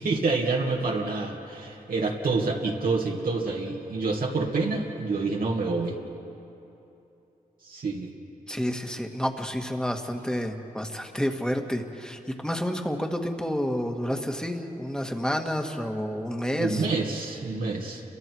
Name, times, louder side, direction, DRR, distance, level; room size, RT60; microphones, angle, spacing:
voice 1, 0.0-6.0 7.6-8.1 16.6-18.0, right 3 dB, 75° right, -2 dB, 2.3 m, -27 dB
voice 2, 8.5-16.9, equal, 5° left, 4 dB, 1.9 m, -29 dB
30.0 x 23.5 x 4.7 m, 2.9 s
cardioid pair, 70°, 15 cm